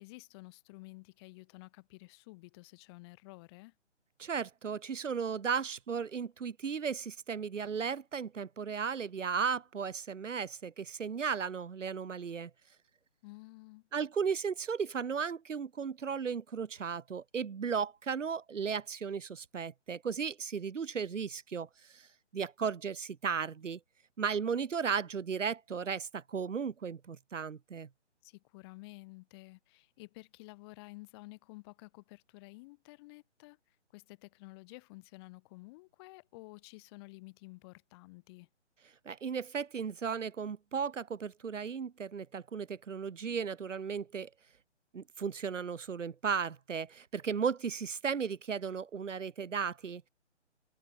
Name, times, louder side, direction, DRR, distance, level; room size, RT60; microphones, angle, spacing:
voice 1, 0.0-3.7 13.2-13.9 28.2-38.5, left 24 dB, 20° left, 6.3 m, -52 dB
voice 2, 4.2-12.5 13.9-22.1 22.3-23.8 24.2-27.9 39.1-44.3 44.9-50.1, right 6 dB, 90° right, 0.6 m, -35 dB
figure-of-eight pair, 140°, 36 cm